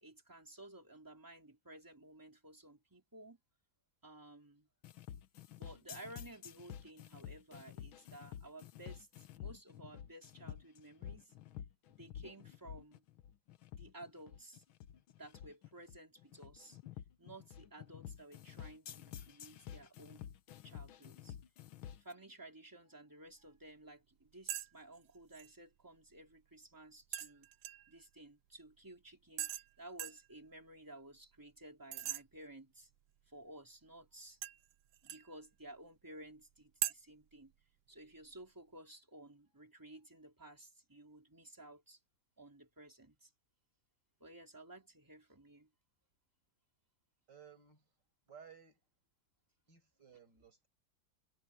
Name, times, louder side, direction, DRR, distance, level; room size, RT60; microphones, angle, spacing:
voice 1, 0.0-3.4 4.0-4.7 5.5-11.3 11.9-13.0 13.8-14.6 15.2-16.8 17.2-20.3 20.6-21.4 22.0-27.5 27.9-32.9 33.3-34.4 35.0-37.5 37.9-42.0 42.4-43.3 44.2-45.7, right 1 dB, 10° right, 3.4 m, -55 dB
sound 1, 4.8-22.1, left 9 dB, 85° left, 1.8 m, -50 dB
sound 2, 24.5-24.7 25.0-25.5 27.1-28.0 29.4-29.7 30.0-30.3 31.9-32.2 34.4-35.3 36.8-36.9, right 12 dB, 85° right, 1.6 m, -40 dB
voice 2, 47.3-47.8 48.3-48.8 49.7-50.7, right 7 dB, 60° right, 6.5 m, -58 dB
omnidirectional pair, 2.2 m